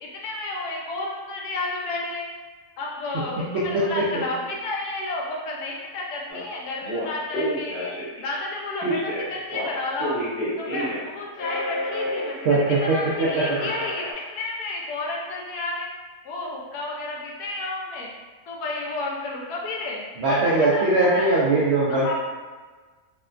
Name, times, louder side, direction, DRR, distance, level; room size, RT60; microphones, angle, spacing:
voice 1, 0.0-2.3 2.8-7.9 8.2-10.2 10.6-15.9 16.2-18.1 18.5-21.4 21.9-22.1, left 2 dB, 85° left, -2 dB, 1.1 m, -31 dB
voice 2, 3.5-4.2 12.4-13.4 20.2-22.1, right 2 dB, 75° right, -7 dB, 0.6 m, -21 dB
Telephone, 6.3-6.4 6.8-8.2 8.8-11.1 11.3-14.1, equal, 20° left, 1.0 m, -30 dB
2.9 x 2.1 x 2.4 m, 1.4 s
omnidirectional pair, 1.6 m